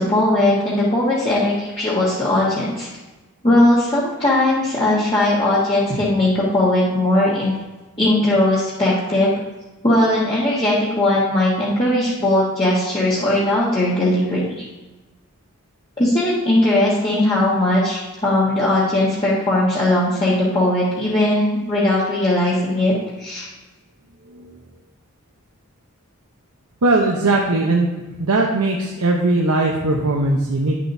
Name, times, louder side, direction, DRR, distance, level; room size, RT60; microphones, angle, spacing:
voice 1, 0.0-2.9 3.4-7.5 8.0-9.3 9.8-14.6 16.0-23.5, left 1 dB, 25° left, -9 dB, 1.5 m, -18 dB
voice 2, 26.8-27.9 28.2-30.7, right 2 dB, 85° right, -1 dB, 0.9 m, -19 dB
10.5 x 7.5 x 2.7 m, 1.1 s
head